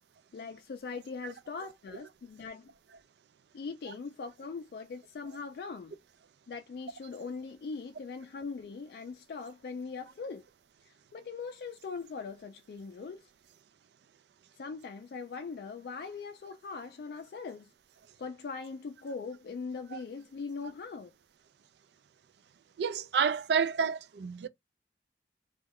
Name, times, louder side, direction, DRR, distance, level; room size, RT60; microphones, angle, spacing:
voice 1, 0.3-2.7 3.5-6.0 6.5-10.4 10.9-13.3 14.6-17.7 18.2-21.1, left 4 dB, 60° left, 0.3 m, -41 dB
voice 2, 22.8-24.5, right 6 dB, 75° right, 0.4 m, -29 dB
2.3 x 2.1 x 3.4 m
head